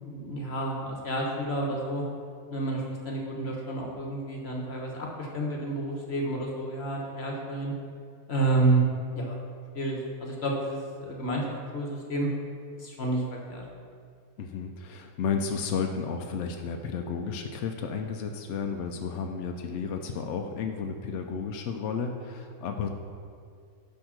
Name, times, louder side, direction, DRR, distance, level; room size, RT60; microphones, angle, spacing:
voice 1, 0.0-2.0 2.5-7.7 8.3-8.8 9.1-9.4 9.7-11.5 11.7-12.3 12.8-13.6, right 2 dB, 50° left, -1 dB, 1.2 m, -30 dB
voice 2, 14.4-22.9, left 5 dB, 65° left, 3 dB, 0.8 m, -32 dB
9.9 x 3.6 x 6.1 m, 2.2 s
omnidirectional pair, 1.5 m